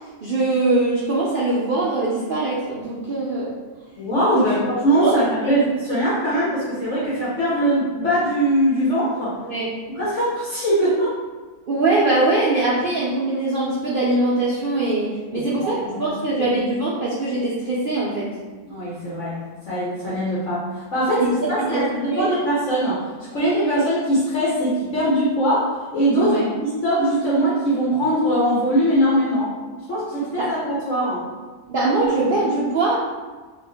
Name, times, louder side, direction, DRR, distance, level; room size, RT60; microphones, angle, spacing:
voice 1, 0.2-3.5 4.3-4.5 5.0-5.2 5.4-5.6 9.5-9.7 11.7-18.3 21.2-22.3 26.2-26.5 30.4-30.5 31.7-33.0, right 2 dB, 80° right, -7 dB, 0.4 m, -22 dB
voice 2, 4.0-4.6 4.8-9.3 9.9-11.1 15.3-16.1 18.7-23.0 23.3-25.7 25.9-29.5 29.9-31.2, right 1 dB, 55° left, -9 dB, 1.2 m, -21 dB
3.7 x 2.5 x 3.4 m, 1.4 s
omnidirectional pair, 1.7 m